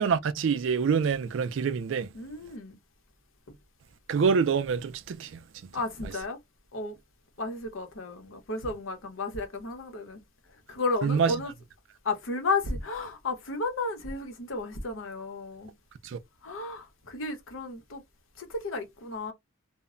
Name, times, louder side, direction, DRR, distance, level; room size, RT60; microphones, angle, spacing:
voice 1, 0.0-2.1 4.1-5.4 11.0-11.3 16.0-16.2, right 6 dB, 60° right, 0.3 m, -26 dB
voice 2, 2.1-2.8 3.5-3.6 5.7-6.4 6.7-7.0 7.4-11.5 12.0-15.7 16.4-18.0 18.4-19.3, left 3 dB, 75° left, 0.8 m, -33 dB
2.1 x 2.0 x 3.6 m
head